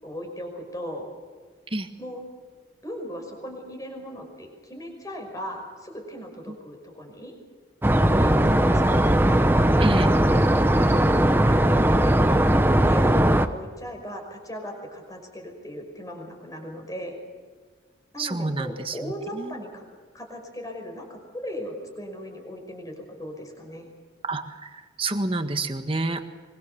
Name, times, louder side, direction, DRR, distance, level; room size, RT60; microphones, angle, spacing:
voice 1, 0.0-1.1 2.0-2.2 2.8-7.4 8.2-12.3 12.8-17.2 18.1-19.9 20.1-23.9, equal, 20° left, 3 dB, 5.4 m, -38 dB
sound 1, 7.8-13.5, right 1 dB, 10° right, 0.9 m, -19 dB
voice 2, 8.1-8.7 9.8-10.1 18.2-19.6 24.2-26.3, right 2 dB, 30° right, 7 dB, 1.6 m, -29 dB
23.5 x 23.5 x 6.9 m, 1.5 s
head